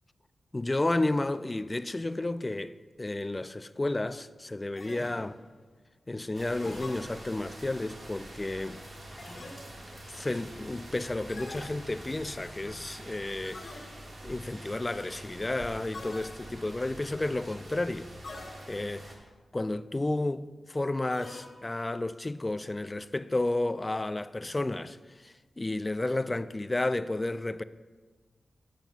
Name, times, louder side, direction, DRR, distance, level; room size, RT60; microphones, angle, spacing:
voice 1, 0.5-5.4 6.1-8.8 10.1-13.9 14.2-18.1 18.7-19.1 19.5-25.0 25.2-27.6, left 2 dB, 25° left, 0.3 m, -32 dB
sound 1, 4.8-5.6 6.6-7.6 9.2-10.0 11.3-12.3 13.4-14.3 15.9-16.9 18.2-19.0 21.1-22.0, left 2 dB, 55° left, 1.8 m, -45 dB
sound 2, 6.3-19.2, right 1 dB, 50° right, 1.9 m, -46 dB
13.5 x 8.9 x 2.4 m
cardioid pair, 70°, 0 cm